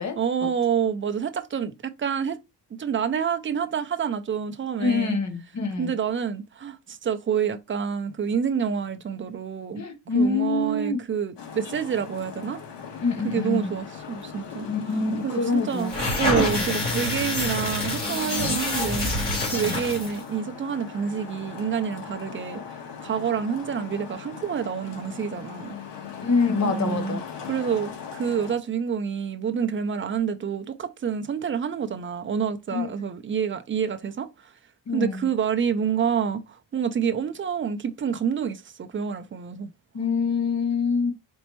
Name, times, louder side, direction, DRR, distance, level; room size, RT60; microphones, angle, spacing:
voice 1, 0.2-2.4 2.7-5.2 5.8-9.8 10.1-12.6 13.2-14.7 15.2-22.6 23.0-25.8 26.6-34.3 34.9-39.7, right 7 dB, 30° right, 0.4 m, -28 dB
voice 2, 4.8-5.9 9.7-11.0 13.0-13.7 14.7-15.9 16.6-16.7 19.6-19.8 26.2-27.2 32.7-32.9 34.9-35.3 39.9-41.1, left 4 dB, 40° left, 1.1 m, -25 dB
Traffic noise roadway noise, 11.4-28.5, left 7 dB, 75° left, 1.4 m, -40 dB
sound 1, 15.8-20.2, left 1 dB, 20° left, 2.5 m, -26 dB
4.4 x 4.0 x 3.0 m
wide cardioid pair, 180°, 42 cm